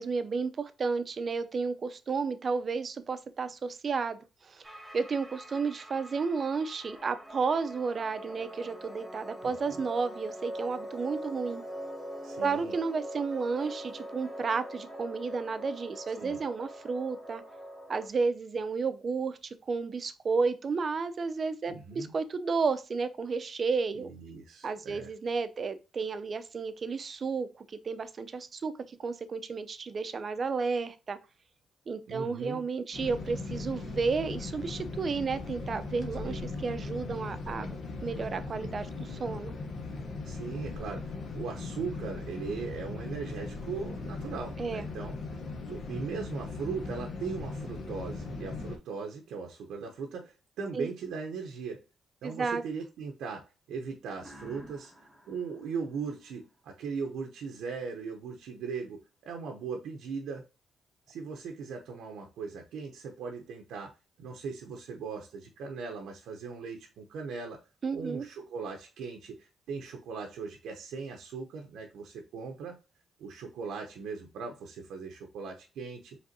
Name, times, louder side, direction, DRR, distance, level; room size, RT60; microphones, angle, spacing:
voice 1, 0.0-4.6 4.9-11.6 12.4-17.4 17.9-24.1 24.6-31.2 31.9-37.8 38.0-39.5 44.6-44.8 50.7-50.9 52.2-52.6 67.8-68.2, right 4 dB, 45° right, 0.6 m, -32 dB
sound 1, 4.6-18.1, equal, 5° right, 1.5 m, -43 dB
voice 2, 12.2-12.7 16.2-16.4 21.7-22.1 23.9-25.1 32.1-32.6 36.2-36.5 40.2-45.2 45.7-51.8 52.2-54.9 55.3-60.5 61.1-63.9 64.2-67.6 67.9-72.8 73.2-76.2, right 5 dB, 80° right, 0.7 m, -39 dB
sound 2, 32.9-48.8, left 3 dB, 60° left, 0.9 m, -39 dB
sound 3, 54.2-56.9, equal, 10° left, 1.4 m, -53 dB
5.2 x 3.3 x 2.7 m
cardioid pair, 85°, 0 cm